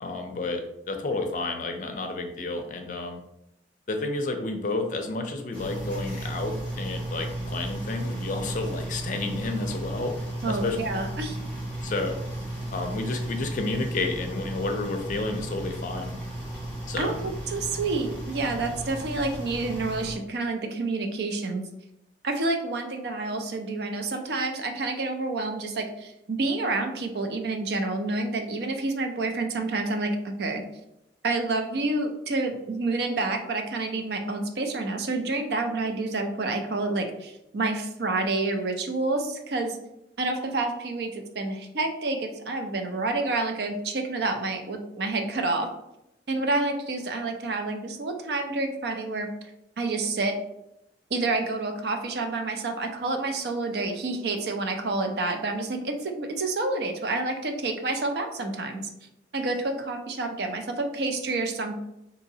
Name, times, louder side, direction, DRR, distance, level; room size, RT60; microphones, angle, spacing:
voice 1, 0.0-3.2 3.9-10.1 10.5-10.8 11.8-12.2 12.7-16.1 16.9-17.2, left 2 dB, 45° left, 5 dB, 0.4 m, -31 dB
sound 1, 5.5-20.1, right 1 dB, 5° left, 1.1 m, -34 dB
voice 2, 10.4-11.4 17.0-21.6 22.2-30.6 31.2-39.8 40.2-45.7 46.3-49.3 49.8-50.4 51.1-58.9 59.3-61.8, right 3 dB, 65° right, 5 dB, 0.5 m, -28 dB
3.9 x 2.7 x 2.7 m, 0.84 s
head